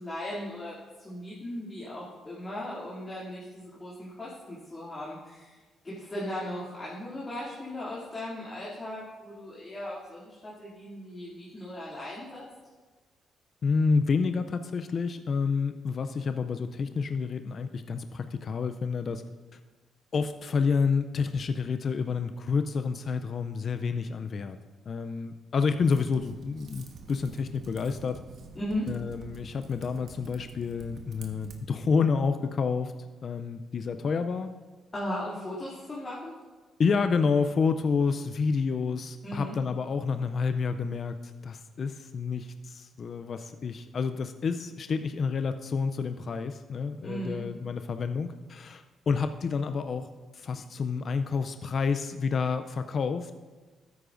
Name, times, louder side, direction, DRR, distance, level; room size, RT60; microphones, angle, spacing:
voice 1, 0.0-12.4 28.5-28.9 34.9-36.3 39.2-39.6 47.0-47.5, left 1 dB, 25° left, -8 dB, 2.6 m, -37 dB
voice 2, 13.6-19.2 20.1-24.6 24.9-28.2 28.9-32.9 33.2-34.5 36.8-50.1 50.3-53.3, left 5 dB, 50° left, 9 dB, 0.4 m, -29 dB
Typing, 25.8-31.6, right 4 dB, 60° right, 1.2 m, -48 dB
13.0 x 9.5 x 2.6 m, 1.3 s
cardioid pair, 90°, 0 cm